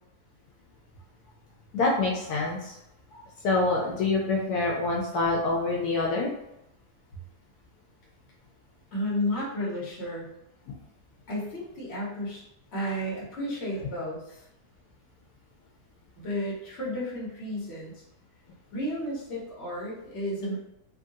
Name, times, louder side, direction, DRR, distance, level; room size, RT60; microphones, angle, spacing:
voice 1, 1.7-2.7 3.1-6.3, left 3 dB, 80° left, -2 dB, 1.1 m, -26 dB
voice 2, 8.9-10.2 11.3-12.4 12.7-14.5 16.1-18.0 18.7-20.6, left 1 dB, 45° left, -5 dB, 1.3 m, -32 dB
3.0 x 2.5 x 2.6 m, 0.84 s
omnidirectional pair, 1.7 m